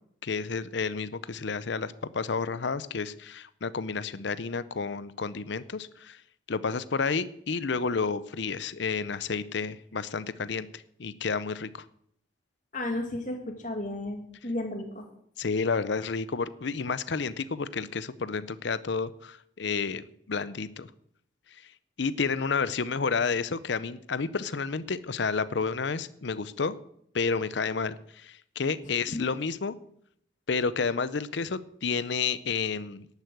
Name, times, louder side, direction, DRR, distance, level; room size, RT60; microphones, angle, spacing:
voice 1, 0.2-6.2 6.5-11.8 15.4-20.9 22.0-26.8 27.1-29.7 30.5-33.1, left 5 dB, 65° left, 15 dB, 0.6 m, -30 dB
voice 2, 12.7-15.1 29.1-29.2, left 1 dB, 40° left, 3 dB, 2.5 m, -33 dB
11.5 x 8.2 x 7.9 m, 0.68 s
head